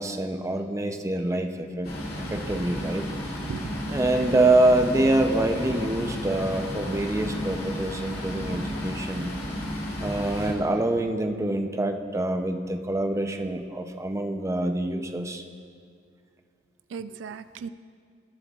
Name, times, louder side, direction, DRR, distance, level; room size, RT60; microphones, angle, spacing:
voice 1, 0.0-1.9 2.3-3.0 3.9-9.3 10.0-15.4, right 1 dB, 15° right, 6 dB, 0.5 m, -25 dB
sound 1, 1.8-10.5, equal, 55° left, 2.4 m, -33 dB
voice 2, 4.1-4.5 16.9-17.7, right 6 dB, 80° right, 12 dB, 0.3 m, -37 dB
19.5 x 7.5 x 2.4 m, 2.2 s
head